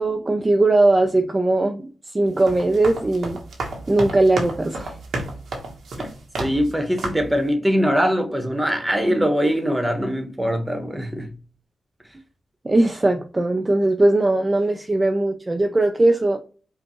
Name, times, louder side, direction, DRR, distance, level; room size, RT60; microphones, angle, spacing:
voice 1, 0.0-3.4 3.9-5.0 12.6-16.4, right 2 dB, 30° right, 0.6 m, -19 dB
sound 1, 2.3-6.7 7.0-7.4, right 2 dB, 85° right, 1.1 m, -31 dB
voice 2, 6.4-11.3, equal, 10° right, 1.2 m, -22 dB
5.1 x 2.4 x 3.1 m
cardioid pair, 60°, 0 cm